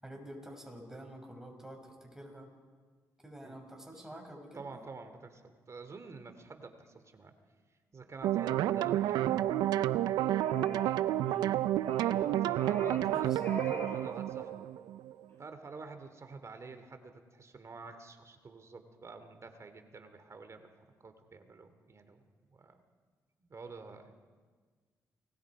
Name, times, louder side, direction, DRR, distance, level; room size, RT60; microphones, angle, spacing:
voice 1, 0.0-2.5 3.2-4.8 9.2-9.6 11.2-11.6 13.1-13.8, right 1 dB, 5° right, 1 dB, 7.0 m, -48 dB
voice 2, 4.5-7.3 7.9-9.5 11.9-14.7 15.4-20.7 21.0-22.2 22.5-22.8 23.4-24.2, right 4 dB, 45° right, 8 dB, 2.6 m, -48 dB
sound 1, 8.2-15.2, right 13 dB, 90° right, 0.5 m, -30 dB
sound 2, 10.4-10.9 11.2-11.5 11.8-12.2 12.6-13.1 13.4-14.0 14.3-14.5, left 2 dB, 30° left, 7.5 m, -44 dB
29.5 x 20.5 x 5.0 m, 1.5 s
supercardioid pair, 60°, 7 cm